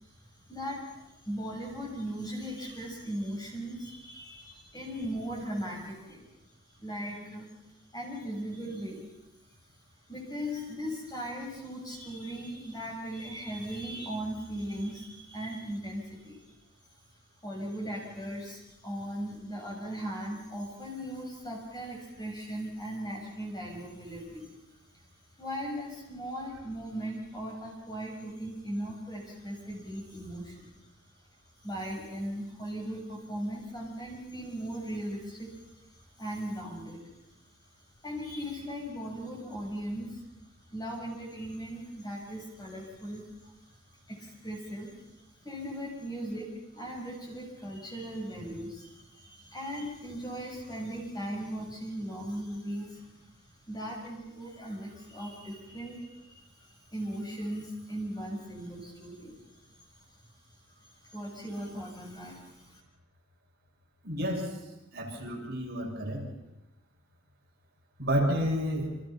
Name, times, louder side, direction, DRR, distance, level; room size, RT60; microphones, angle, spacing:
voice 1, 0.0-6.3 6.7-9.1 10.1-16.4 17.4-24.5 25.4-30.7 31.6-37.0 38.0-40.2 40.7-53.3 53.7-59.4 60.7-62.8, equal, 20° left, -1 dB, 6.9 m, -38 dB
voice 2, 64.0-64.6 64.9-66.3 68.0-68.9, equal, 50° right, -2 dB, 7.1 m, -30 dB
28.5 x 27.0 x 5.9 m, 0.96 s
head